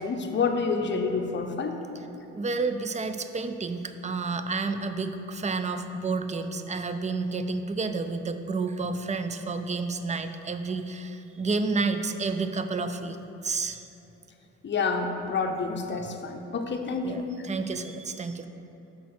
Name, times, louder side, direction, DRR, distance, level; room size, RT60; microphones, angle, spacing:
voice 1, 0.0-1.8 14.6-17.5, left 4 dB, 40° left, 4 dB, 0.7 m, -28 dB
voice 2, 2.4-13.2 13.4-13.9 17.0-18.5, right 3 dB, 25° right, 9 dB, 0.4 m, -30 dB
6.2 x 4.7 x 6.0 m, 3.0 s
cardioid pair, 90°, 30 cm